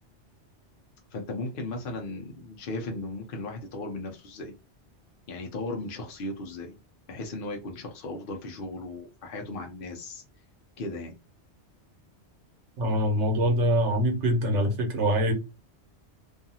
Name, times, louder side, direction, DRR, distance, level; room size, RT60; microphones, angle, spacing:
voice 1, 1.1-4.5 5.3-6.8 7.1-10.2 10.8-11.1, left 2 dB, 60° left, 0.7 m, -36 dB
voice 2, 12.8-15.3, equal, 85° right, 1.2 m, -24 dB
2.6 x 2.4 x 2.7 m
omnidirectional pair, 1.2 m